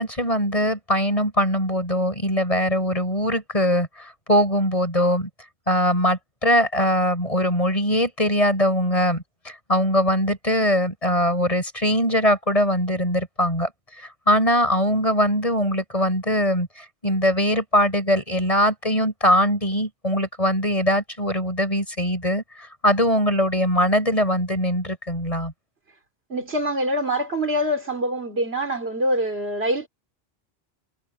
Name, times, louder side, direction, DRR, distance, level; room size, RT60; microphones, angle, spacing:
voice 1, 0.0-5.3 5.7-13.7 14.0-25.5, equal, 35° left, 7.6 m, -22 dB
voice 2, 26.3-29.9, equal, 85° right, 3.7 m, -24 dB
omnidirectional pair, 1.0 m